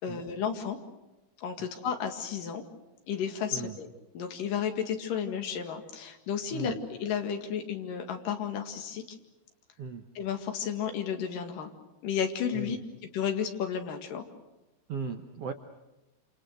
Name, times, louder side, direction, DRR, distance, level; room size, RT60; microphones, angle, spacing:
voice 1, 0.0-0.8 1.4-2.6 3.1-3.9 4.2-9.0 10.2-11.7 12.0-12.8 13.1-14.3, left 8 dB, 65° left, 5 dB, 3.5 m, -32 dB
voice 2, 14.9-15.5, right 5 dB, 70° right, 5 dB, 1.4 m, -37 dB
28.0 x 27.5 x 6.5 m, 1.0 s
omnidirectional pair, 4.4 m